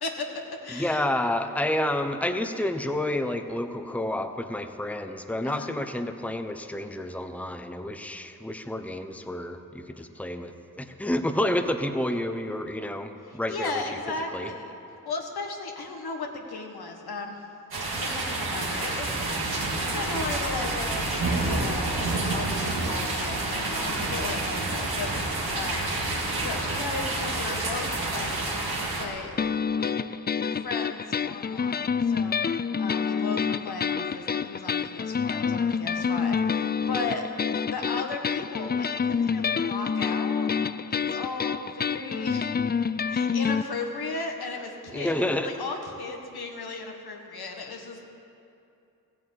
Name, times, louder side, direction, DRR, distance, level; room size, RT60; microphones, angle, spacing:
voice 1, 0.0-1.1 5.4-5.7 13.5-14.8 15.0-17.4 17.9-19.6 19.9-25.9 26.3-29.9 30.4-37.3 37.7-40.5 40.9-42.6 43.1-48.1, left 3 dB, 85° left, 2 dB, 1.5 m, -36 dB
voice 2, 0.7-13.8 14.3-14.5 44.9-45.5, left 1 dB, 5° left, 7 dB, 1.0 m, -29 dB
sound 1, 17.7-29.0, right 2 dB, 80° right, 2.3 m, -28 dB
sound 2, 29.4-43.6, left 6 dB, 30° left, 0.4 m, -27 dB
15.0 x 8.9 x 8.5 m, 2.7 s
cardioid pair, 45°, 37 cm